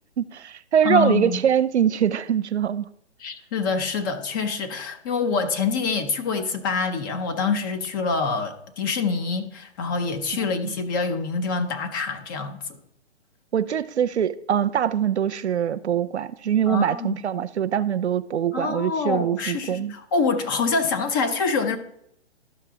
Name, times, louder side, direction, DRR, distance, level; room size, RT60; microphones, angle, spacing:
voice 1, 0.2-2.9 10.6-10.7 13.5-19.9, right 9 dB, 75° right, 0.6 m, -23 dB
voice 2, 0.8-1.4 3.2-12.6 16.7-17.2 18.5-21.8, left 4 dB, 20° left, 0.6 m, -26 dB
12.5 x 5.6 x 3.6 m
hypercardioid pair, 140°, 34 cm